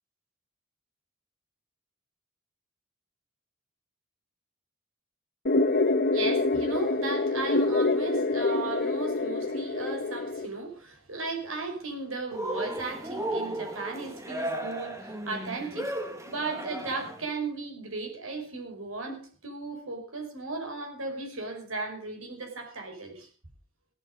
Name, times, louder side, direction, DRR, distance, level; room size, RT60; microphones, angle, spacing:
sound 1, 5.5-10.5, left 2 dB, 45° left, 1.3 m, -26 dB
voice 1, 6.1-23.3, right 3 dB, 75° right, 5.1 m, -36 dB
Cheering, 12.3-17.3, right 1 dB, 15° right, 1.8 m, -35 dB
16.0 x 12.0 x 5.2 m
head